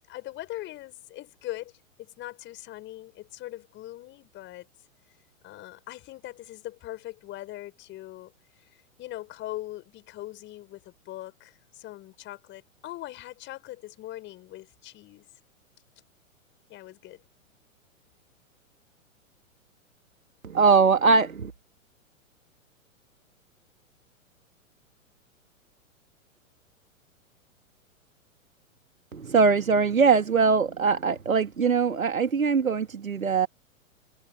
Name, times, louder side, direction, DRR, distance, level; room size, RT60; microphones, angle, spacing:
voice 1, 0.0-1.7 2.0-4.7 5.4-8.3 9.0-15.3 16.7-17.2, left 16 dB, 25° left, 5.9 m, -41 dB
voice 2, 20.4-21.5 29.1-33.5, right 5 dB, 75° right, 2.2 m, -22 dB
figure-of-eight pair, 110°, 41 cm